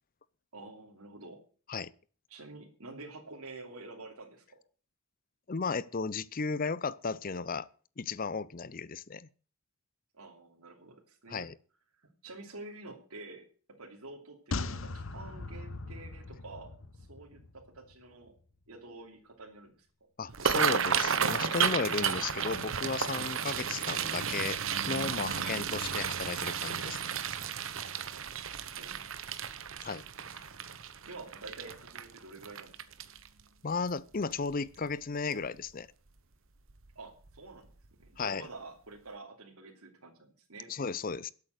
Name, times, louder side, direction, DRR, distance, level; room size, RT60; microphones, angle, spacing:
voice 1, 0.5-1.4 2.3-4.6 10.1-11.5 12.2-13.4 13.8-18.3 18.7-19.7 28.1-28.3 28.8-29.7 30.5-30.7 31.0-32.8 36.9-37.7 38.0-40.7, right 3 dB, 85° right, 3.0 m, -48 dB
voice 2, 5.5-7.7 8.0-9.3 11.3-11.6 20.2-24.6 24.9-27.1 29.8-30.1 33.6-35.9 38.2-38.5 40.7-41.3, left 4 dB, 40° left, 0.5 m, -34 dB
sound 1, 14.5-17.9 18.2-18.3, left 3 dB, 65° left, 1.0 m, -39 dB
sound 2, 20.3-33.4 33.9-34.2 34.5-34.9 35.3-35.5 36.7-36.9 37.2-37.4 37.8-37.9, right 7 dB, 65° right, 1.1 m, -33 dB
12.5 x 8.4 x 8.1 m
head